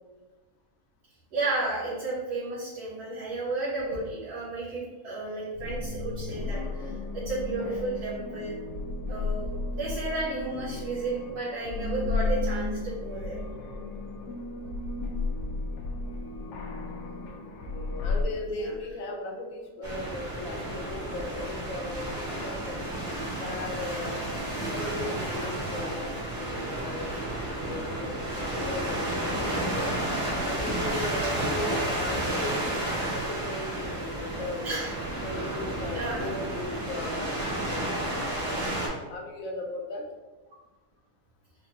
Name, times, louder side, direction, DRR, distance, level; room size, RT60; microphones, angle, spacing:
voice 1, 1.3-8.5 9.1-13.4 18.4-18.7 34.6-34.9 35.9-36.3, right 2 dB, 90° right, -8 dB, 1.6 m, -33 dB
sound 1, 5.5-18.2, left 3 dB, 90° left, 1.2 m, -33 dB
voice 2, 17.7-22.8 23.4-24.3 24.7-27.1 27.6-29.9 30.4-34.8 35.2-37.4 37.7-38.8 39.1-40.1, left 2 dB, 65° left, 2 dB, 1.0 m, -37 dB
sound 2, 19.8-38.9, right 1 dB, 60° right, 1.7 m, -32 dB
4.9 x 2.3 x 2.9 m, 1.2 s
omnidirectional pair, 1.7 m